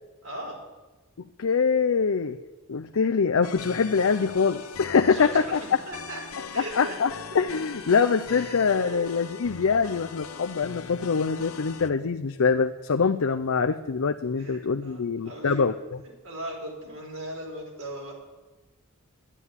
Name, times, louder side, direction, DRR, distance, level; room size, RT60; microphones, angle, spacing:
voice 1, 0.2-0.6 5.1-6.2 6.5-7.0 8.3-9.1 10.3-10.4 14.4-15.7 16.2-18.1, right 1 dB, 75° right, -1 dB, 5.3 m, -38 dB
voice 2, 1.4-2.4 2.7-5.6 6.6-15.7, left 5 dB, 70° left, 6 dB, 0.5 m, -24 dB
sound 1, 3.4-11.9, left 5 dB, 85° left, 0.9 m, -40 dB
12.0 x 9.9 x 9.6 m, 1.2 s
head